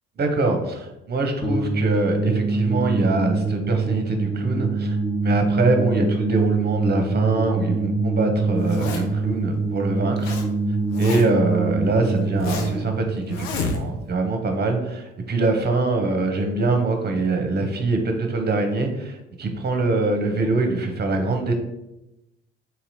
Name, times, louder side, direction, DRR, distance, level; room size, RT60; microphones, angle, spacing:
voice 1, 0.2-5.0 5.2-10.4 11.0-21.5, right 3 dB, 30° right, 4 dB, 0.8 m, -23 dB
sound 1, 1.4-14.5, right 3 dB, 30° left, 1.2 m, -25 dB
Zipper (clothing), 8.6-9.3 9.9-10.5 10.7-11.5 12.0-12.8 13.3-14.1, left 3 dB, 80° left, 0.6 m, -30 dB
4.2 x 2.8 x 2.7 m, 0.91 s
hypercardioid pair, 55°, 32 cm